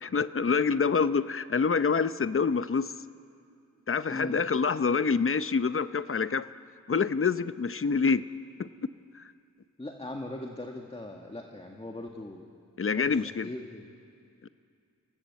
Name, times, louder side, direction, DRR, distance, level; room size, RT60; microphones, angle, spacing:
voice 1, 0.0-2.9 3.9-6.5 6.9-8.2 8.6-8.7 12.8-13.5 14.4-14.5, left 5 dB, 40° left, 13 dB, 0.8 m, -26 dB
voice 2, 9.8-12.5 12.9-13.9, left 1 dB, 20° left, 2 dB, 1.9 m, -40 dB
28.5 x 17.5 x 8.3 m, 2.4 s
cardioid pair, 65°, 32 cm